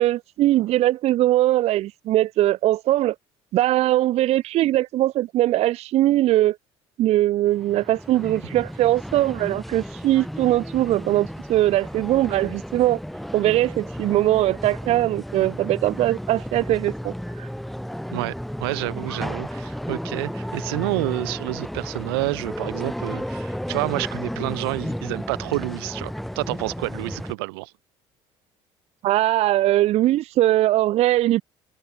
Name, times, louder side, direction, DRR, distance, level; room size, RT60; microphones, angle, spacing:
voice 1, 0.0-3.2 3.5-6.6 7.0-13.0 13.3-17.5 29.0-31.4, right 15 dB, 55° right, 0.5 m, -21 dB
sound 1, 7.5-27.3, equal, ahead, 0.3 m, -33 dB
voice 2, 18.1-27.7, right 26 dB, 90° right, 0.8 m, -29 dB
supercardioid pair, 80°, 13 cm